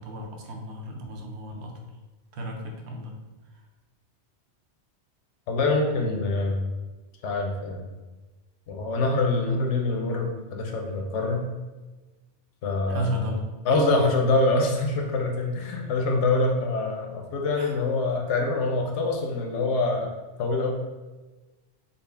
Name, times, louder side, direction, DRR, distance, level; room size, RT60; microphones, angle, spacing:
voice 1, 0.0-1.8 2.3-3.1 3.5-3.6 12.9-13.5 15.8-15.9 17.5-17.8, equal, 70° right, 2 dB, 0.9 m, -33 dB
voice 2, 5.5-6.7 7.2-7.9 8.7-11.5 12.6-13.1 13.7-20.1 20.4-20.7, left 2 dB, 90° left, 2 dB, 1.0 m, -25 dB
3.9 x 2.1 x 3.3 m, 1.2 s
omnidirectional pair, 1.2 m